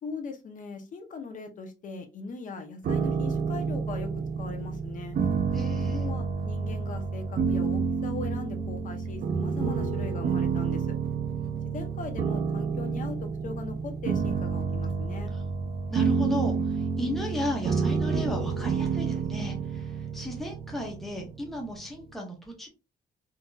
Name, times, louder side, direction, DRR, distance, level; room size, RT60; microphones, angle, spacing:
voice 1, 0.0-4.1 4.4-5.2 5.8-10.9 11.7-15.3, left 4 dB, 40° left, 6 dB, 0.6 m, -39 dB
sound 1, 2.8-21.8, right 5 dB, 45° right, 0.5 m, -29 dB
voice 2, 5.5-6.0 11.4-11.8 15.9-22.7, left 1 dB, ahead, 1 dB, 0.6 m, -35 dB
3.8 x 2.7 x 2.2 m, 0.30 s
wide cardioid pair, 175°, 20 cm